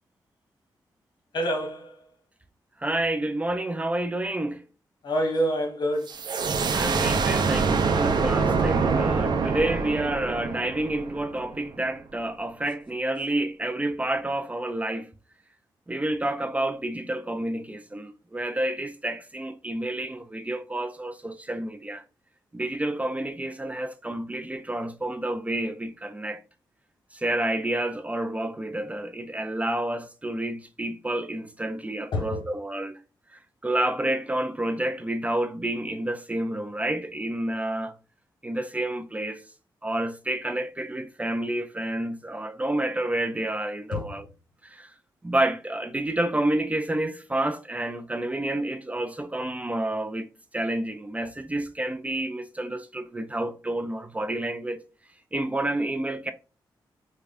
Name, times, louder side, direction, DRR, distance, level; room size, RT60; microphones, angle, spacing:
voice 1, 1.3-2.0 5.0-6.2 32.1-32.4 43.9-44.2, equal, 65° left, 1.2 m, -27 dB
voice 2, 2.8-4.6 6.7-15.1 15.9-22.0 22.5-26.4 27.1-33.0 33.3-37.9 38.4-39.4 39.8-44.3 44.6-44.9 45.2-50.3 50.5-54.8 55.3-56.3, right 1 dB, 15° right, 0.4 m, -29 dB
sound 1, 6.1-11.6, right 4 dB, 60° right, 0.6 m, -25 dB
4.7 x 2.2 x 2.5 m
cardioid pair, 70°, 8 cm